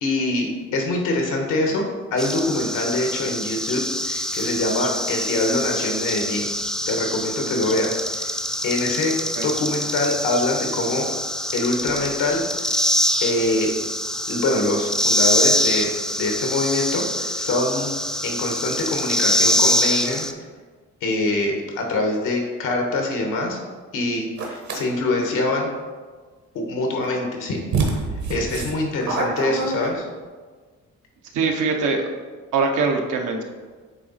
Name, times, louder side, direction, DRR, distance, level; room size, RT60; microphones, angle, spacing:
voice 1, 0.0-1.8 2.1-6.5 6.9-8.3 8.6-9.1 9.4-11.1 11.5-12.4 13.2-13.7 14.3-17.9 18.2-20.3 21.0-23.6 23.9-25.7 26.5-27.6 27.9-28.0 28.3-30.1, left 2 dB, 85° left, 2 dB, 1.3 m, -24 dB
sound 1, 2.2-20.3, equal, ahead, 0.4 m, -25 dB
sound 2, 24.4-24.8 27.0-27.1 27.7-30.2, right 3 dB, 70° right, 1.2 m, -26 dB
voice 2, 31.3-32.0 32.5-33.4, right 4 dB, 85° right, 2 dB, 0.9 m, -22 dB
7.9 x 3.0 x 4.1 m, 1.5 s
cardioid pair, 90°, 30 cm